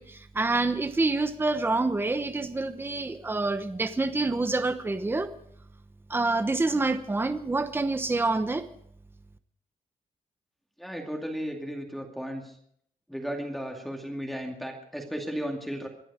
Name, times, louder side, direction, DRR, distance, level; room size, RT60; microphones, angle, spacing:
voice 1, 0.0-5.3 6.1-8.6, right 3 dB, 15° right, 10 dB, 0.9 m, -27 dB
voice 2, 10.8-12.5 13.1-15.9, equal, ahead, 1 dB, 2.4 m, -35 dB
25.5 x 10.0 x 4.9 m, 0.69 s
wide cardioid pair, 130°, 15 cm